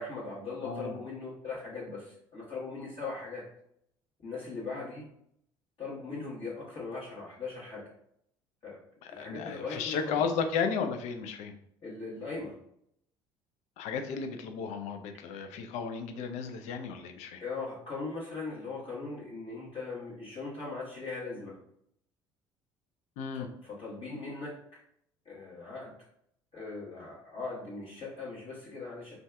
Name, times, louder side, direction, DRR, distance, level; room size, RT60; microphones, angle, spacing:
voice 1, 0.0-3.4 4.2-5.0 5.8-7.9 8.6-8.8 9.1-10.2 11.8-12.5 17.4-21.5 23.6-24.6 25.2-25.9 26.5-29.2, left 3 dB, 45° left, -6 dB, 1.1 m, -39 dB
voice 2, 0.6-1.0 9.2-11.5 13.8-17.4 23.2-23.5, left 6 dB, 65° left, 7 dB, 0.4 m, -34 dB
2.6 x 2.4 x 3.3 m, 0.72 s
hypercardioid pair, 60°, 13 cm